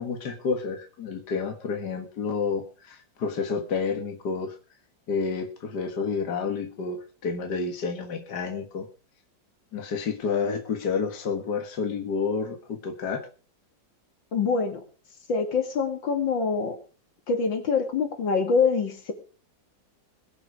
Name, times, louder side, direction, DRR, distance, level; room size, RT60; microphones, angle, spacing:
voice 1, 0.0-4.6 5.1-8.9 9.7-13.3, left 5 dB, 60° left, 4 dB, 2.2 m, -30 dB
voice 2, 14.3-14.8 15.3-16.8 17.3-19.1, left 5 dB, 80° left, 5 dB, 3.0 m, -25 dB
21.5 x 7.8 x 4.9 m, 0.37 s
omnidirectional pair, 2.0 m